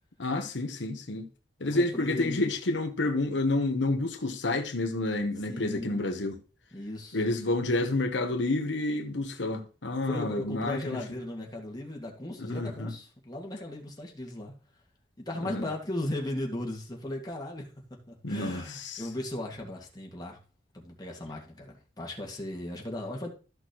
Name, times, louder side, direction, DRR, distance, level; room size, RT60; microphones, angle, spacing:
voice 1, 0.2-1.3 1.6-6.4 7.1-11.0 12.4-12.9 15.4-15.6 18.2-19.0, left 2 dB, 85° left, 1.1 m, -29 dB
voice 2, 1.6-2.5 5.5-6.1 6.7-7.2 10.1-14.5 15.2-20.4 20.7-23.3, left 1 dB, 20° left, 2.0 m, -37 dB
13.5 x 6.2 x 3.0 m
head